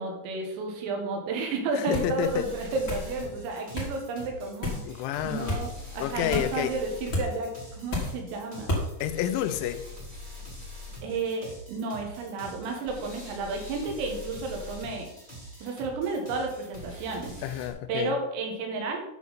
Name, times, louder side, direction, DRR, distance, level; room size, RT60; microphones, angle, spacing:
voice 1, 0.0-8.7 11.0-15.1 15.6-17.3 17.9-19.0, right 3 dB, 90° right, 2 dB, 4.1 m, -32 dB
voice 2, 1.7-2.5 4.8-5.7 6.0-6.8 9.0-9.8 17.4-18.1, left 11 dB, 80° left, 10 dB, 2.9 m, -29 dB
sound 1, 1.9-2.2 2.9-3.1 3.7-3.9 4.6-4.8 5.5-5.6 6.3-6.6 7.1-7.3 7.9-8.2 8.7-8.9, left 1 dB, 60° left, 1.1 m, -30 dB
sound 2, 2.2-17.7, left 1 dB, 15° right, 1.6 m, -44 dB
9.3 x 6.1 x 4.1 m, 0.85 s
omnidirectional pair, 5.7 m